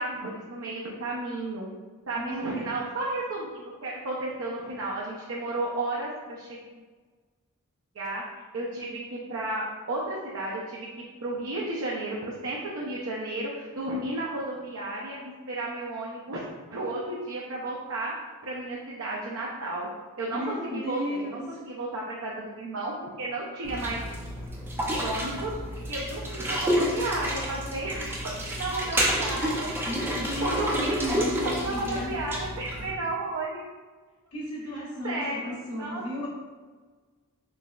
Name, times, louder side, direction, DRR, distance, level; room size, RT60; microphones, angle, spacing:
voice 1, 0.0-1.7 2.1-6.6 7.9-8.2 8.5-10.9 11.2-15.2 15.5-16.4 16.7-18.1 18.4-19.9 20.2-24.0 24.9-29.7 30.0-33.6 34.7-36.0, right 2 dB, 70° right, -5 dB, 0.5 m, -33 dB
voice 2, 2.1-2.7 20.3-21.6 29.8-32.1 34.3-36.3, equal, 75° left, -8 dB, 1.2 m, -34 dB
sound 1, 23.6-32.9, equal, 10° right, 0.4 m, -30 dB
3.9 x 3.1 x 2.3 m, 1.4 s
head